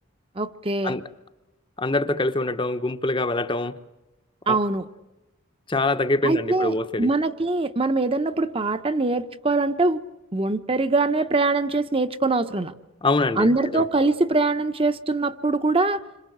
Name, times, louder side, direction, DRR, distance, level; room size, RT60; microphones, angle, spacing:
voice 1, 0.4-1.0 4.5-4.8 6.2-10.0 10.3-12.7 13.4-16.0, right 3 dB, 25° right, 10 dB, 0.9 m, -23 dB
voice 2, 1.8-3.7 4.5-4.6 5.7-7.1 13.0-13.8, left 2 dB, 25° left, 10 dB, 0.9 m, -24 dB
27.5 x 26.0 x 7.9 m, 1.0 s
head